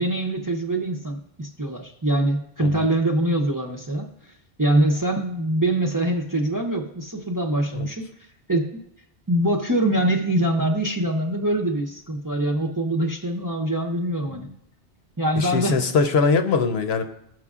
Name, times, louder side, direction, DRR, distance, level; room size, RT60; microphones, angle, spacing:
voice 1, 0.0-4.1 4.6-8.1 8.5-8.8 9.3-14.5 15.2-15.8, right 1 dB, 25° right, 1 dB, 0.5 m, -23 dB
voice 2, 15.4-17.0, left 4 dB, 75° left, 7 dB, 1.0 m, -22 dB
16.0 x 6.1 x 2.4 m, 0.74 s
omnidirectional pair, 1.1 m